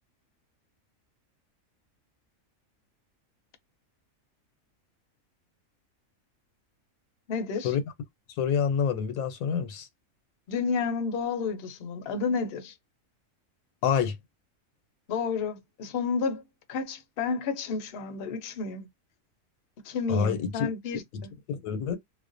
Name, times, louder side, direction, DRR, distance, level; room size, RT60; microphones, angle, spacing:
voice 1, 7.3-7.7 10.5-12.7 15.1-16.4 16.7-18.9 19.8-21.3, left 5 dB, 60° left, 0.7 m, -31 dB
voice 2, 8.4-9.9 13.8-14.2 20.1-20.7 21.1-21.2 21.5-22.0, left 7 dB, 90° left, 1.0 m, -27 dB
2.4 x 2.1 x 2.5 m
omnidirectional pair, 1.4 m